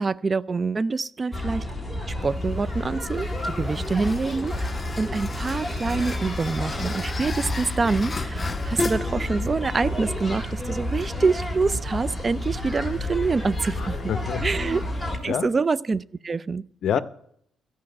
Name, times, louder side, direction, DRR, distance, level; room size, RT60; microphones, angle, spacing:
voice 1, 0.0-1.7 2.2-14.0 14.4-14.8 15.2-16.7, right 4 dB, 30° right, 0.4 m, -26 dB
sound 1, 1.3-15.2, left 1 dB, ahead, 2.9 m, -30 dB
sound 2, 2.2-15.6, left 3 dB, 30° left, 0.6 m, -37 dB
sound 3, 5.4-10.1 10.7-10.8 11.1-11.2, equal, 15° right, 3.1 m, -48 dB
voice 2, 13.8-14.6 15.3-15.5 16.8-17.0, left 9 dB, 65° left, 0.7 m, -27 dB
14.0 x 5.7 x 9.7 m
cardioid pair, 90°, 0 cm